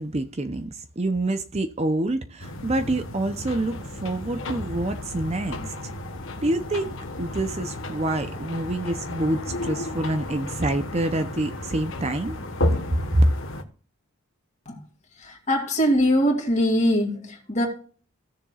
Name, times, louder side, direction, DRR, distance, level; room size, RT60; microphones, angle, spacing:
voice 1, 0.0-5.7 6.4-12.8 13.1-13.2, right 1 dB, 30° right, 0.6 m, -26 dB
sound 1, 2.4-13.6, left 2 dB, 60° left, 1.4 m, -34 dB
voice 2, 15.2-17.7, equal, 30° left, 2.5 m, -22 dB
16.5 x 7.1 x 2.4 m
head